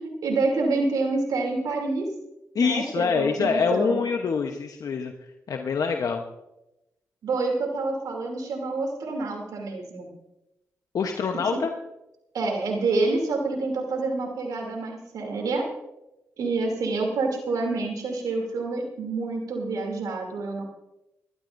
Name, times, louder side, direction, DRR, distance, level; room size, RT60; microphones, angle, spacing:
voice 1, 0.0-2.1 2.6-4.0 7.2-10.1 12.3-15.7 16.4-20.6, right 3 dB, 80° right, 1 dB, 2.9 m, -27 dB
voice 2, 2.5-5.1 5.5-6.2 10.9-11.7, left 5 dB, 70° left, 4 dB, 0.9 m, -25 dB
21.0 x 13.0 x 2.6 m, 0.91 s
supercardioid pair, 45°, 6 cm